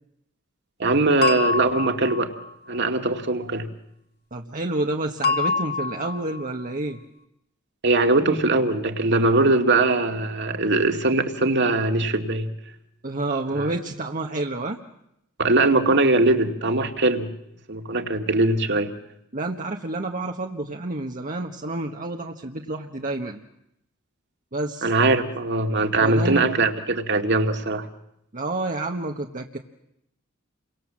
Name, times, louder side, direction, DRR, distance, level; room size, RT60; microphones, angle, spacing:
voice 1, 0.8-2.3 2.7-3.7 7.8-12.5 13.6-13.7 15.4-17.3 17.7-18.9 24.8-27.9, right 2 dB, 55° right, 5 dB, 2.3 m, -21 dB
sound 1, 1.2-2.5 5.2-6.4, left 4 dB, 50° left, 1.8 m, -26 dB
voice 2, 4.3-7.0 13.0-14.8 19.3-23.4 24.5-24.9 26.0-26.5 28.3-29.6, right 2 dB, 40° right, 2 dB, 1.4 m, -29 dB
29.5 x 24.0 x 7.5 m, 0.80 s
head